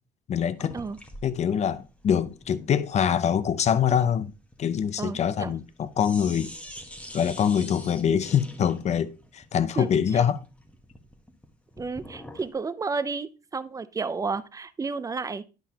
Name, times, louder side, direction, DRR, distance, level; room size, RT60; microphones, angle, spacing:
voice 1, 0.3-0.8 1.2-4.3 4.6-6.5 7.1-10.4, left 8 dB, 40° left, 0.6 m, -24 dB
sound 1, 0.6-5.7 6.0-12.5, equal, 5° left, 1.1 m, -46 dB
voice 2, 5.0-5.5 9.8-10.2 11.8-15.4, right 4 dB, 20° right, 0.5 m, -32 dB
10.5 x 5.5 x 2.8 m
cardioid pair, 110°, 17 cm